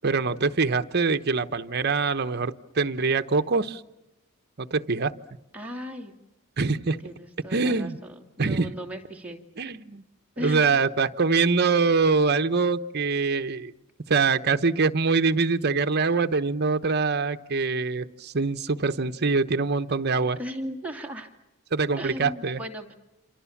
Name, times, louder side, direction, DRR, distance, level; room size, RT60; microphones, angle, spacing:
voice 1, 0.0-3.8 4.6-5.1 6.6-7.0 7.5-8.0 8.4-8.7 9.6-10.0 10.4-13.7 14.1-20.4 21.7-22.6, right 4 dB, 50° right, 9 dB, 0.9 m, -24 dB
voice 2, 5.5-6.1 7.0-9.4 10.4-10.6 20.4-21.3 22.0-22.9, equal, 5° right, 2 dB, 2.5 m, -36 dB
27.5 x 27.0 x 7.2 m, 0.91 s
head